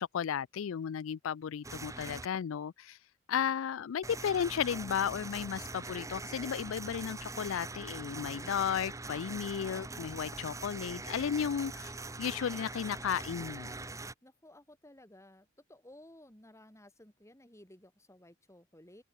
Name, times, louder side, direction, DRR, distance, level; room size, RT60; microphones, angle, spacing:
voice 1, 0.0-3.0 3.3-11.9 12.2-13.7, left 8 dB, 70° left, 0.4 m, -34 dB
sound 1, 1.6-2.3 4.0-14.1, right 3 dB, 15° right, 1.3 m, -42 dB
voice 2, 14.2-19.0, left 1 dB, 15° left, 3.4 m, -56 dB
open air
head